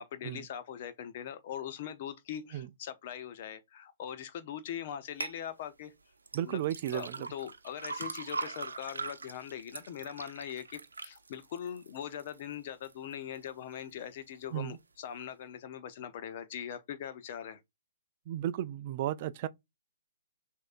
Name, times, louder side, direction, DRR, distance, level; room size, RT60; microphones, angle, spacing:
voice 1, 0.0-5.9 6.4-6.6 6.9-17.6, left 9 dB, 45° left, 0.7 m, -41 dB
sound 1, 5.2-5.4 6.3-12.4 12.8-13.4 13.9-14.0, right 4 dB, 85° right, 0.7 m, -41 dB
voice 2, 6.3-7.3 14.5-14.8 18.3-19.5, right 12 dB, 40° right, 0.4 m, -34 dB
6.3 x 2.6 x 2.5 m
hypercardioid pair, 135°, 0 cm